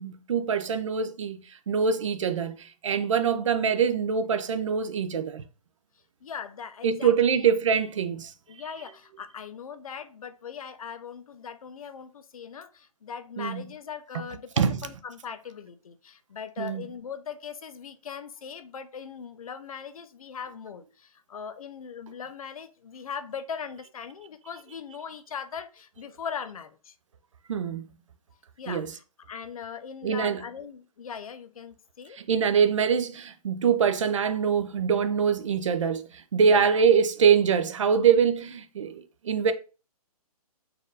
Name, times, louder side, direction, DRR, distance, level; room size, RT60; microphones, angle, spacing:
voice 1, 0.0-1.4 1.7-5.4 6.8-8.3 13.4-13.6 14.6-14.8 16.6-16.8 27.5-27.8 28.7-28.9 30.0-30.4 32.2-36.0 36.3-39.5, right 6 dB, 55° right, 0.5 m, -24 dB
voice 2, 6.2-7.5 8.5-27.0 28.6-32.2 36.4-36.8, left 7 dB, 65° left, 0.6 m, -40 dB
4.2 x 2.5 x 3.8 m
hypercardioid pair, 160°, 20 cm